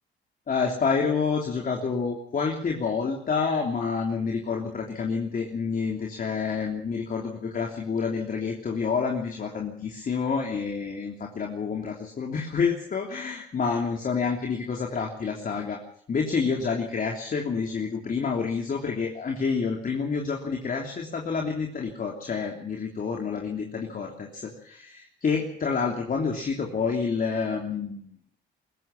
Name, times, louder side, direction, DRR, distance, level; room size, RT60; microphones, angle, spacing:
voice 1, 0.5-15.8 16.1-28.1, left 5 dB, 45° left, 1 dB, 3.2 m, -28 dB
21.5 x 16.5 x 7.5 m, 0.64 s
cardioid pair, 90°, 20 cm